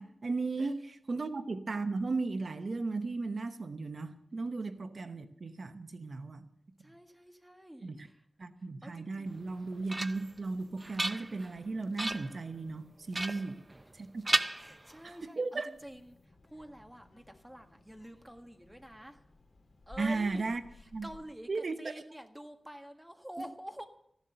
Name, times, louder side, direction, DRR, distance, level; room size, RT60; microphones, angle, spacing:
voice 1, 0.0-6.4 7.8-8.1 8.4-13.6 13.9-14.2 15.0-15.7 20.0-20.6 20.9-21.1 21.5-21.9, right 3 dB, 60° right, 9 dB, 0.9 m, -36 dB
voice 2, 6.8-8.2 8.8-9.3 13.3-13.4 14.6-19.2 19.9-20.4 21.0-23.9, equal, 5° right, 5 dB, 1.7 m, -48 dB
sound 1, 9.4-10.4 10.8-11.6 12.0-12.4 13.1-14.0 14.3-15.2, right 1 dB, 25° right, 0.5 m, -34 dB
Child speech kid speaking, 15.7-21.3, left 3 dB, 60° left, 3.0 m, -59 dB
15.0 x 11.5 x 6.8 m, 0.71 s
wide cardioid pair, 85°, 0 cm